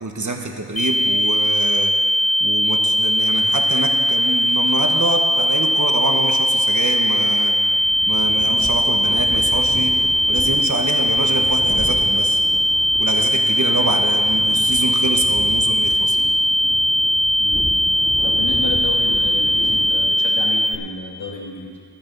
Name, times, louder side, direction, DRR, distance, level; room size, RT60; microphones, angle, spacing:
voice 1, 0.0-1.9 2.4-7.5 8.0-10.0 10.3-12.4 13.0-16.3, right 2 dB, 40° right, 3 dB, 1.3 m, -26 dB
sound 1, 0.8-20.8, equal, 30° left, 0.7 m, -19 dB
sound 2, 7.7-20.4, equal, 15° left, 2.4 m, -35 dB
voice 2, 18.2-21.8, left 3 dB, 90° left, -2 dB, 2.1 m, -31 dB
12.0 x 10.5 x 5.4 m, 2.1 s
wide cardioid pair, 55°, 45 cm